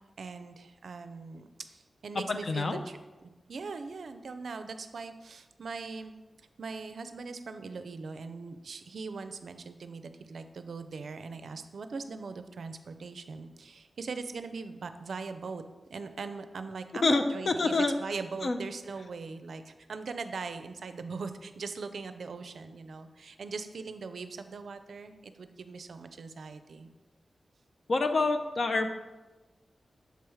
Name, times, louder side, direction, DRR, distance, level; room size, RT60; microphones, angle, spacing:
voice 1, 0.2-6.2 6.6-15.6 15.9-17.7 18.0-26.9, right 4 dB, 80° right, 9 dB, 0.4 m, -41 dB
voice 2, 2.1-2.8 17.0-17.9 18.4-18.6 27.9-28.9, left 3 dB, 60° left, 6 dB, 0.5 m, -27 dB
6.7 x 3.1 x 4.8 m, 1.2 s
wide cardioid pair, 75°, 0 cm